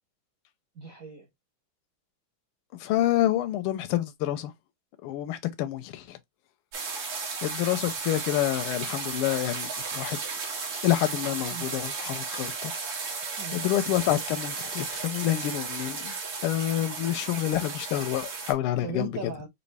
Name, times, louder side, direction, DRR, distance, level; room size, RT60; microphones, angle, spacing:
voice 1, 0.7-1.3 11.5-11.7 13.4-13.6 16.8-17.0 18.8-19.5, right 5 dB, 55° right, 1.0 m, -38 dB
voice 2, 2.8-4.5 5.0-6.2 7.4-10.2 10.8-12.7 13.5-16.1 16.4-19.1, left 13 dB, 85° left, 1.5 m, -28 dB
sound 1, 6.7-18.5, right 4 dB, 80° right, 2.5 m, -34 dB
5.2 x 2.6 x 3.2 m
omnidirectional pair, 2.4 m